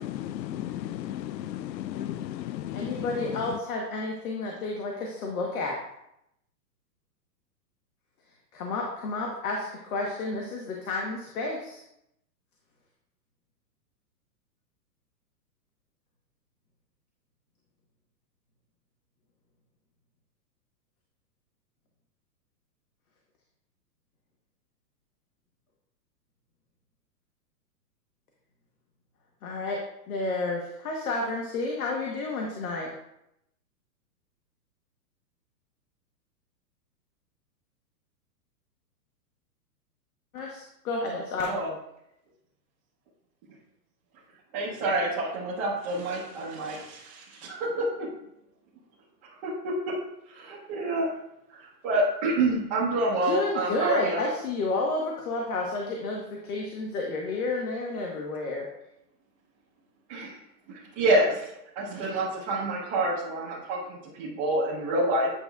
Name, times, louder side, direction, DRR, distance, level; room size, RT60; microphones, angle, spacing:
voice 1, 0.1-3.0, left 12 dB, 85° left, 16 dB, 0.5 m, -35 dB
voice 2, 2.7-5.8 8.5-11.8 29.4-29.8 30.1-32.9 40.3-41.6 53.2-58.7, left 3 dB, 60° left, 0 dB, 1.1 m, -31 dB
voice 3, 44.5-47.8 49.4-49.7 50.3-51.1 51.6-54.2 60.1-60.3 60.7-61.4 61.8-65.3, right 2 dB, 20° right, -9 dB, 0.7 m, -27 dB
9.0 x 5.2 x 2.3 m, 0.82 s
hypercardioid pair, 160°, 50 cm